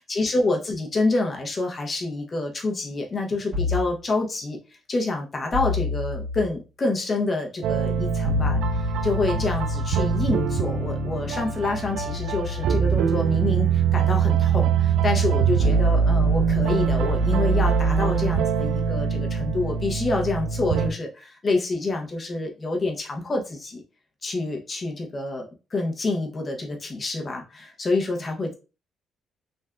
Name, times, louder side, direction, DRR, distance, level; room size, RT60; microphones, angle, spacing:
voice 1, 0.0-4.6 4.9-23.8 24.2-28.5, left 2 dB, 35° left, 2 dB, 0.8 m, -27 dB
sound 1, 3.5-4.0 5.5-6.5 8.2-19.6, left 4 dB, 45° right, 1.4 m, -32 dB
sound 2, 7.6-20.9, right 7 dB, 85° right, 0.3 m, -23 dB
3.4 x 2.5 x 2.3 m, 0.31 s
cardioid pair, 90°, 0 cm